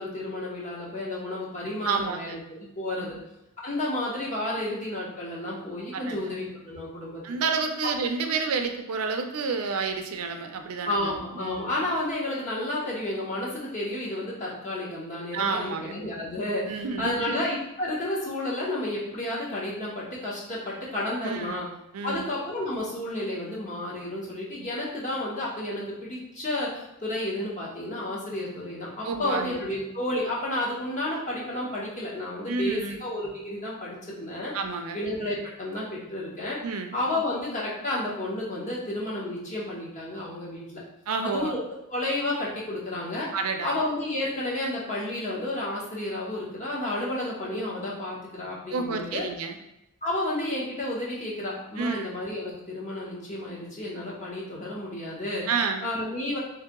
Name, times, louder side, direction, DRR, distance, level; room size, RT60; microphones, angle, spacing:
voice 1, 0.0-3.1 3.6-7.2 10.8-21.7 22.0-34.5 34.9-36.6 36.9-40.8 41.2-41.6 41.9-43.3 43.6-49.3 50.0-55.5 55.8-56.4, left 1 dB, 35° left, -5 dB, 1.0 m, -31 dB
voice 2, 1.8-2.4 3.0-3.2 5.9-6.2 7.2-11.7 15.3-15.9 16.7-17.4 21.2-21.6 21.9-22.3 24.6-24.7 29.0-29.6 32.5-33.0 34.5-35.0 36.6-36.9 41.1-41.5 43.3-43.8 48.7-49.6 51.8-52.1 55.5-55.9, right 4 dB, 80° right, 6 dB, 0.5 m, -30 dB
3.3 x 2.8 x 3.6 m, 0.87 s
head